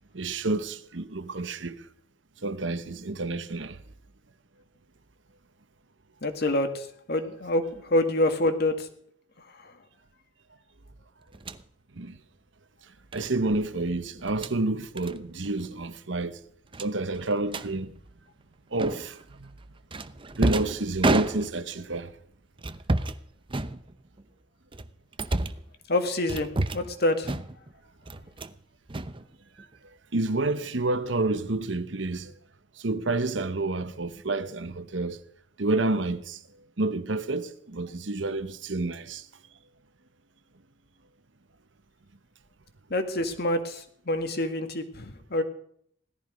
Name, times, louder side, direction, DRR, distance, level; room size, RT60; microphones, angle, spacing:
voice 1, 0.1-1.9 2.4-3.8 11.9-12.2 13.1-16.4 16.8-18.0 18.7-19.5 20.4-22.1 30.1-32.3 32.8-35.2 35.6-36.4 36.8-39.3, right 2 dB, 75° right, 1.2 m, -29 dB
voice 2, 6.2-7.6 7.9-8.9 25.9-27.3 42.9-45.4, left 1 dB, 55° left, 2.0 m, -26 dB
sound 1, 11.3-11.6 13.1-13.3 14.2-14.6 15.0-15.2 15.4-15.7 15.9-16.0 16.7-17.7 18.8-19.2 19.9-21.8 22.6-23.2 23.5-24.2 24.7-25.7 26.3-26.9 27.2-27.7 28.1-28.6 28.9-29.7, right 2 dB, 25° right, 0.7 m, -30 dB
17.5 x 13.5 x 5.3 m
head